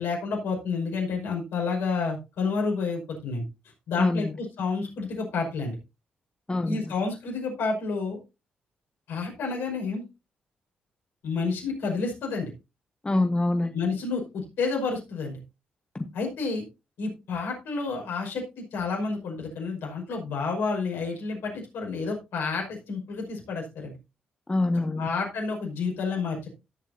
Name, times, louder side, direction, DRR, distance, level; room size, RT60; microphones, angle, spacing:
voice 1, 0.0-3.4 3.9-5.8 6.6-8.2 9.1-10.0 11.2-12.5 13.7-15.4 16.1-16.6 17.0-23.9 25.0-26.5, left 4 dB, 75° left, 5.4 m, -30 dB
voice 2, 4.0-4.3 6.5-6.9 13.0-13.8 15.9-16.1 24.5-25.1, left 2 dB, 25° left, 1.3 m, -25 dB
17.5 x 7.2 x 2.8 m
hypercardioid pair, 40°, 4 cm